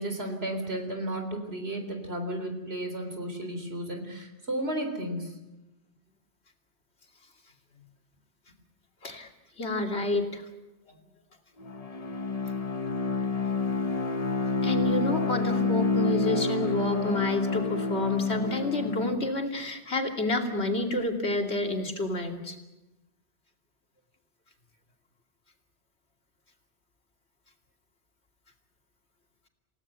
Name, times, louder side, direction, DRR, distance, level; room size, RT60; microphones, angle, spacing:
voice 1, 0.0-5.3, right 1 dB, 65° right, 5 dB, 4.1 m, -33 dB
voice 2, 9.6-10.4 14.6-22.6, left 1 dB, 70° left, 3 dB, 2.9 m, -29 dB
Bowed string instrument, 11.6-19.3, left 4 dB, 35° left, 1.0 m, -28 dB
29.0 x 17.0 x 8.1 m, 1.0 s
omnidirectional pair, 1.1 m